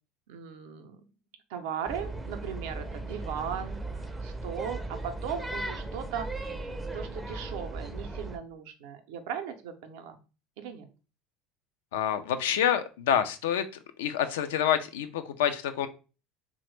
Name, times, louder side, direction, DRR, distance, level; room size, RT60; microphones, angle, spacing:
voice 1, 0.3-1.0 1.5-6.4 6.9-10.2 10.6-10.9, right 8 dB, 75° right, 7 dB, 0.4 m, -38 dB
sound 1, 1.9-8.4, right 2 dB, 10° right, 0.4 m, -37 dB
voice 2, 11.9-13.7 14.0-15.9, left 9 dB, 80° left, 10 dB, 0.3 m, -27 dB
3.0 x 2.0 x 3.1 m, 0.33 s
hypercardioid pair, 80°, 0 cm